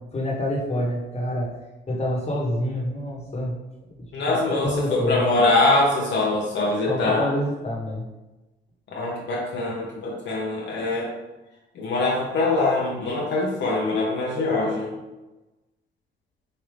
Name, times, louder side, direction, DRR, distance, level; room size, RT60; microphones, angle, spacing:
voice 1, 0.1-1.5 1.9-3.5 4.3-5.2 6.9-8.0, left 1 dB, 35° left, -4 dB, 1.4 m, -27 dB
voice 2, 4.1-7.3 8.9-11.1 11.7-14.9, left 2 dB, 65° left, -4 dB, 0.8 m, -23 dB
5.0 x 2.7 x 3.3 m, 1.1 s
cardioid pair, 90°, 20 cm